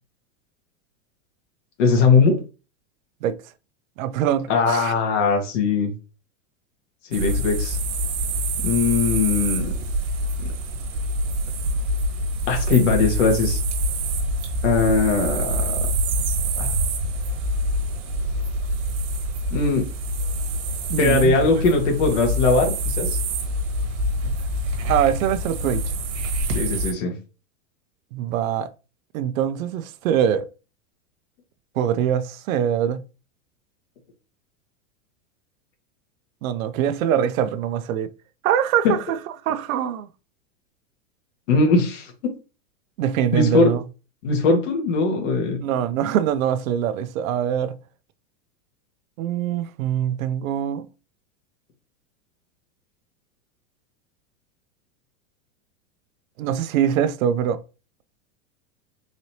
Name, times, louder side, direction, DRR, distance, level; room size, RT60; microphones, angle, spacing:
voice 1, 1.8-2.4 4.5-5.9 7.1-7.8 8.6-9.7 12.5-13.6 14.6-15.7 16.6-16.7 19.5-19.9 21.0-23.2 26.5-27.1 38.8-39.0 41.5-42.3 43.3-43.7 44.2-45.6, left 4 dB, 65° left, 1.6 m, -20 dB
voice 2, 4.0-4.9 20.9-21.4 24.2-24.3 24.9-25.9 28.1-28.7 29.1-30.5 31.8-33.0 36.4-38.1 38.4-39.2 39.5-40.1 43.0-43.8 45.6-47.8 49.2-50.9 56.4-57.6, right 9 dB, 90° right, 0.6 m, -23 dB
sound 1, 7.1-26.9, right 1 dB, 60° right, 1.4 m, -26 dB
4.0 x 3.1 x 2.8 m
supercardioid pair, 155°, 40 cm